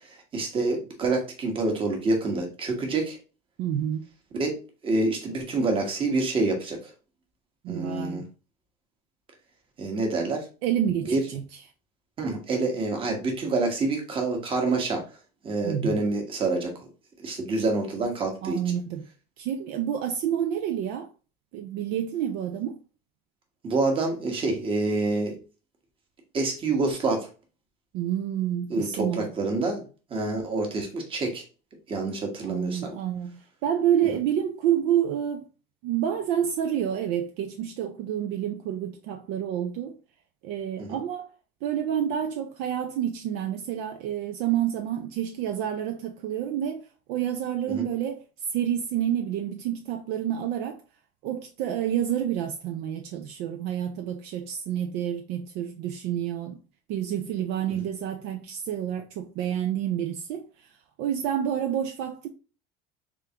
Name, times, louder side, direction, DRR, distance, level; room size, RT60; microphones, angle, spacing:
voice 1, 0.3-3.2 4.3-4.6 4.8-6.8 7.7-8.2 9.8-10.5 11.1-11.2 12.2-15.0 15.4-16.7 17.2-18.7 23.6-25.3 26.3-27.3 28.7-29.8 30.1-31.4 31.9-32.9 40.8-41.0 47.7-47.8, right 3 dB, 25° right, 1.2 m, -27 dB
voice 2, 3.6-4.0 7.6-8.3 10.6-11.4 15.6-16.0 18.4-19.0 19.4-21.1 21.5-22.8 27.9-29.3 32.4-35.5 35.8-40.0 40.4-41.3 41.6-46.8 47.1-48.2 48.5-50.8 51.2-56.6 56.9-60.5 61.0-62.3, right 10 dB, 60° right, 0.5 m, -28 dB
3.7 x 3.4 x 2.8 m
cardioid pair, 145°, 20 cm